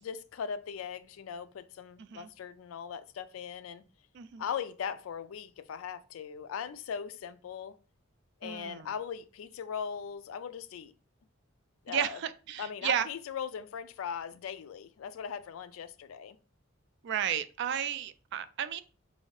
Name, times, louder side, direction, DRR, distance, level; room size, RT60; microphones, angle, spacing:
voice 1, 0.0-3.8 4.4-7.8 8.4-10.9 11.8-12.2 12.6-16.4, left 7 dB, 90° left, 0.3 m, -39 dB
voice 2, 8.4-8.9 11.9-13.1 17.0-18.8, right 9 dB, 60° right, 0.3 m, -33 dB
3.2 x 2.7 x 3.1 m
head